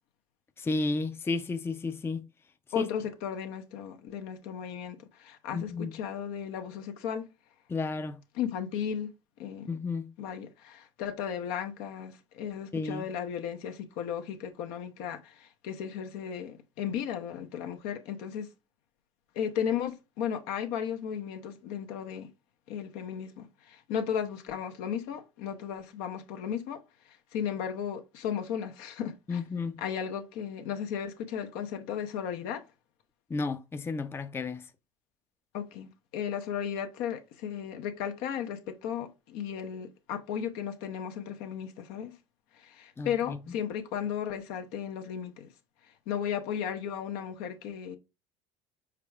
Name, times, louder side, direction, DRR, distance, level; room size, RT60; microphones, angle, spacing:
voice 1, 0.6-2.2 2.8-2.9 5.5-5.9 7.7-8.2 9.7-10.1 12.7-13.1 29.3-29.8 33.3-34.6 43.0-43.4, left 3 dB, 15° left, 0.4 m, -32 dB
voice 2, 2.7-7.3 8.3-9.1 9.4-9.7 10.2-18.5 19.4-22.3 22.7-26.8 27.1-29.4 29.8-32.6 35.5-42.1 42.5-45.5 46.1-48.0, left 8 dB, 75° left, 0.8 m, -35 dB
4.8 x 4.7 x 2.3 m
supercardioid pair, 90°, 15 cm